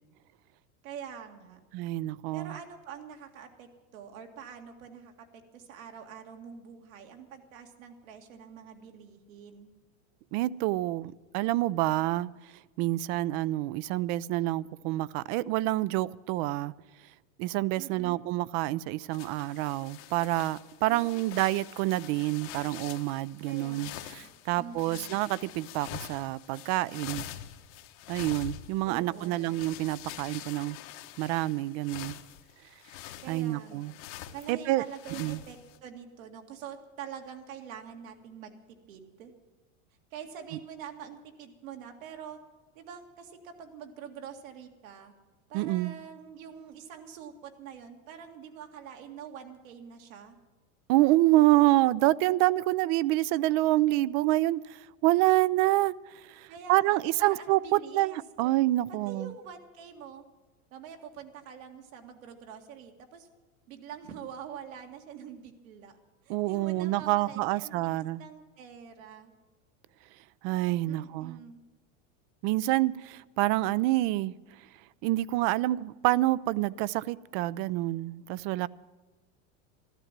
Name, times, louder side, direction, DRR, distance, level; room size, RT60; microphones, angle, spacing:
voice 1, 0.8-1.6 2.3-9.7 17.8-18.2 20.9-21.5 23.4-24.3 24.5-25.2 28.8-29.5 33.2-34.0 34.3-38.6 38.9-39.3 40.1-42.4 42.8-45.1 45.5-50.4 56.5-58.5 59.1-60.2 60.7-63.3 63.7-69.3 70.9-71.6, right 7 dB, 80° right, 4 dB, 2.2 m, -45 dB
voice 2, 1.7-2.6 10.3-12.3 12.8-16.7 17.4-27.3 28.1-30.8 31.2-32.2 33.3-33.9 34.5-34.8 35.2-35.4 45.5-45.9 50.9-59.3 66.3-68.2 70.4-71.4 72.4-74.3 75.0-78.7, right 17 dB, 50° right, 20 dB, 0.5 m, -27 dB
sound 1, 19.1-35.8, left 12 dB, 60° left, 1.2 m, -45 dB
13.5 x 12.5 x 7.4 m, 1.2 s
supercardioid pair, 125°, 40 cm